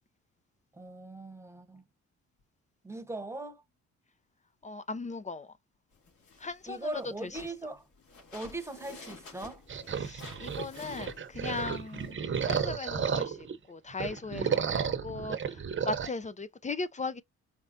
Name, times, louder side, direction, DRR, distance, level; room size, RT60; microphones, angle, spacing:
voice 1, 0.7-1.8 2.8-3.6 6.6-7.8 8.3-9.6, right 2 dB, 10° right, 1.0 m, -40 dB
voice 2, 4.6-5.5 6.4-7.3 10.0-12.2 12.5-15.6 15.9-17.2, left 3 dB, 25° left, 0.5 m, -38 dB
sound 1, 5.9-12.1, left 4 dB, 70° left, 2.6 m, -51 dB
sound 2, 9.7-13.6 13.9-16.1, right 7 dB, 40° right, 0.9 m, -32 dB
5.0 x 3.2 x 2.7 m
cardioid pair, 90°, 30 cm